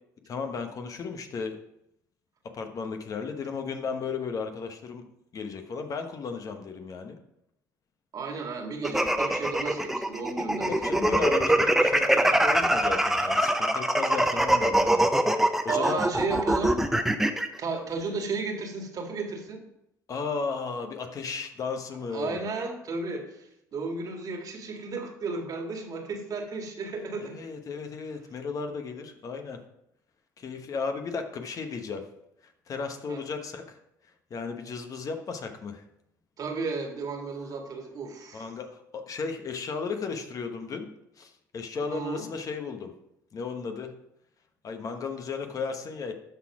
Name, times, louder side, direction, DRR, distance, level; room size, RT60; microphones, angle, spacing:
voice 1, 0.3-1.6 2.5-5.0 5.3-7.2 8.9-9.1 10.6-16.0 20.1-22.4 27.2-29.6 30.4-32.0 32.7-33.8 34.3-35.8 38.3-40.9 41.2-42.9 43.3-43.9 44.6-46.2, left 5 dB, 50° left, 6 dB, 1.2 m, -34 dB
voice 2, 8.1-11.1 15.7-16.8 17.6-19.6 22.1-27.3 33.1-33.2 36.4-38.5 41.9-42.3, right 4 dB, 50° right, 3 dB, 1.9 m, -33 dB
sound 1, 8.8-17.5, right 1 dB, 5° right, 0.8 m, -23 dB
12.5 x 4.2 x 4.9 m, 0.81 s
supercardioid pair, 75°, 8 cm